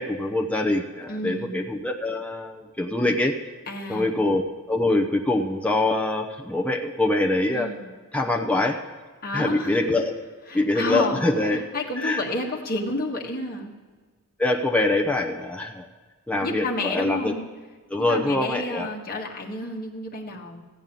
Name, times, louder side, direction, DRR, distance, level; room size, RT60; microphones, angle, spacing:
voice 1, 0.0-3.3 3.9-7.7 8.1-8.8 9.3-10.1 10.5-11.6 12.0-12.2 14.4-15.9 16.3-17.3 17.9-18.9, left 2 dB, 5° left, 1 dB, 0.7 m, -24 dB
voice 2, 1.1-1.6 3.7-4.2 7.5-7.9 9.2-9.8 10.5-13.7 16.4-17.5 18.1-20.6, left 2 dB, 40° left, 0 dB, 1.5 m, -30 dB
15.0 x 5.4 x 9.1 m, 1.4 s
head